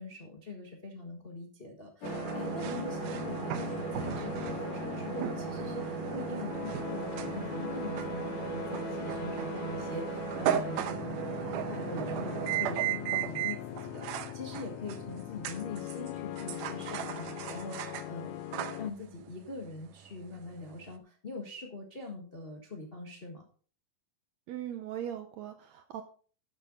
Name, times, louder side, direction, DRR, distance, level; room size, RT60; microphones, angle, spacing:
voice 1, 0.0-11.4 11.6-18.4 18.8-23.4, left 3 dB, 40° left, 1 dB, 0.8 m, -43 dB
sound 1, 2.0-18.9, left 14 dB, 85° left, 1.5 m, -40 dB
sound 2, 2.0-20.9, right 12 dB, 90° right, 2.3 m, -36 dB
voice 2, 24.5-26.0, right 10 dB, 75° right, 8 dB, 1.7 m, -39 dB
11.5 x 7.8 x 3.9 m, 0.43 s
omnidirectional pair, 3.7 m